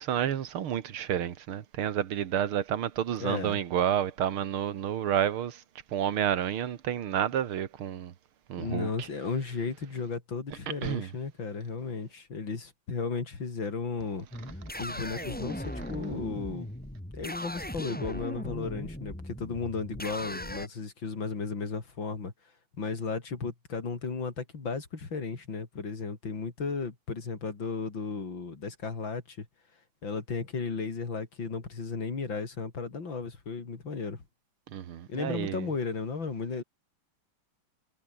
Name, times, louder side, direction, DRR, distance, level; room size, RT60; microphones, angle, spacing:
voice 1, 0.0-5.6 5.9-8.1 8.5-9.1 10.8-11.1 34.7-35.7, right 9 dB, 80° right, 2.3 m, -30 dB
voice 2, 3.2-3.6 8.6-14.3 14.8-16.7 17.1-22.3 22.8-29.5 30.0-34.2 35.1-36.6, left 4 dB, 60° left, 4.3 m, -34 dB
sound 1, 14.3-20.7, left 1 dB, 5° left, 2.3 m, -38 dB
omnidirectional pair, 2.3 m